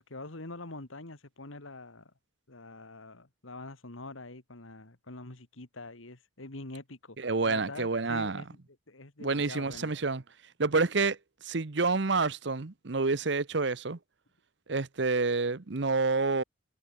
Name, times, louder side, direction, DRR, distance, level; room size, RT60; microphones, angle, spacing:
voice 1, 0.0-2.1 2.5-8.6 8.9-10.0, left 2 dB, 90° left, 2.5 m, -45 dB
voice 2, 7.2-8.4 9.2-10.2 10.6-11.2 11.4-14.0 14.7-16.4, right 3 dB, 65° right, 0.9 m, -28 dB
head